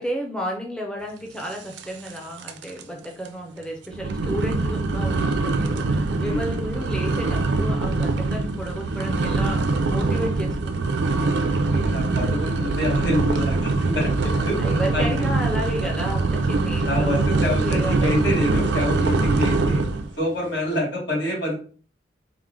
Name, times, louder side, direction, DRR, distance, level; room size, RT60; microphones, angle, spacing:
voice 1, 0.0-11.0 14.6-17.2 17.6-18.5, equal, 5° left, 0 dB, 0.4 m, -32 dB
sound 1, 1.8-2.2 2.4-2.8 3.2-3.3 3.9-20.1, right 3 dB, 75° right, 0.4 m, -23 dB
voice 2, 11.4-14.6 14.9-15.1 16.8-19.8 20.2-21.5, left 1 dB, 75° left, -2 dB, 1.9 m, -26 dB
4.4 x 2.0 x 3.6 m, 0.40 s
head